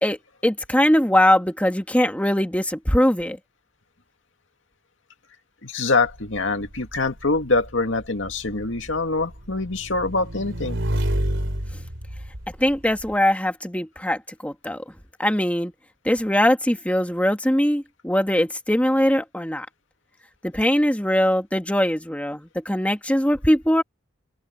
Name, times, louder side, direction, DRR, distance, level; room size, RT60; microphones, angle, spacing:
voice 1, 0.0-3.4 12.6-14.8 15.2-15.7 16.0-19.7 20.4-23.8, equal, 5° left, 1.8 m, -21 dB
voice 2, 5.6-10.8, left 3 dB, 75° left, 2.3 m, -24 dB
Motorcycle / Engine, 6.0-13.1, equal, 70° right, 4.3 m, -30 dB
open air
head